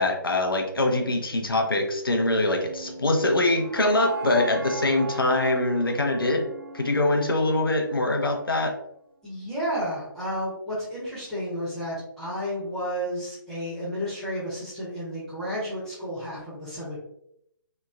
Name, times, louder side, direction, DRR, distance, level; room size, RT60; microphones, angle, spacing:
voice 1, 0.0-6.5 6.7-8.7, left 2 dB, 80° left, 3 dB, 0.6 m, -23 dB
sound 1, 2.3-8.4, right 4 dB, 55° right, 0.5 m, -39 dB
voice 2, 9.2-17.0, equal, 5° left, -11 dB, 0.9 m, -32 dB
2.9 x 2.2 x 2.4 m, 0.76 s
figure-of-eight pair, 140°, 12 cm